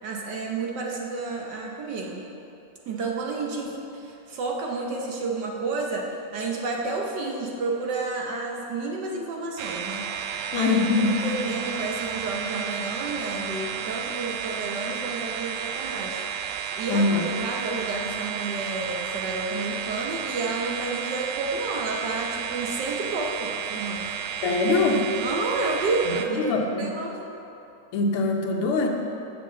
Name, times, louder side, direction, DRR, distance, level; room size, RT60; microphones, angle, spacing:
voice 1, 0.0-2.2 2.9-10.8 11.2-24.1 25.2-27.2, right 3 dB, 60° right, 0 dB, 1.3 m, -30 dB
sound 1, 9.6-26.3, right 8 dB, 80° right, 0.9 m, -32 dB
voice 2, 10.5-11.1 11.5-11.6 16.9-17.2 24.4-25.0 26.5-26.9 27.9-28.9, left 3 dB, 90° left, 2 dB, 1.8 m, -23 dB
6.4 x 6.0 x 7.3 m, 2.8 s
omnidirectional pair, 2.3 m